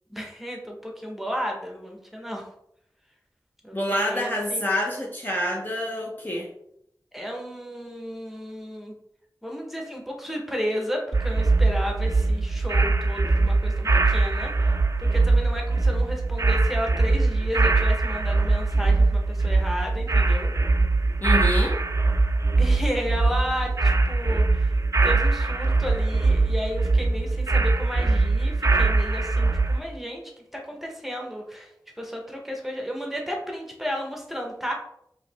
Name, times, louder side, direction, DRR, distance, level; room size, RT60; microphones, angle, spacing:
voice 1, 0.1-2.4 3.6-4.7 7.1-8.9 9.4-20.5 22.6-24.8 25.0-31.7 32.0-34.7, equal, 5° right, 0 dB, 1.1 m, -33 dB
voice 2, 3.7-6.5 21.2-21.8, left 1 dB, 25° left, -2 dB, 0.9 m, -27 dB
sound 1, 11.1-29.8, right 3 dB, 45° right, 0.3 m, -22 dB
4.8 x 2.9 x 3.4 m, 0.74 s
wide cardioid pair, 45°, 7 cm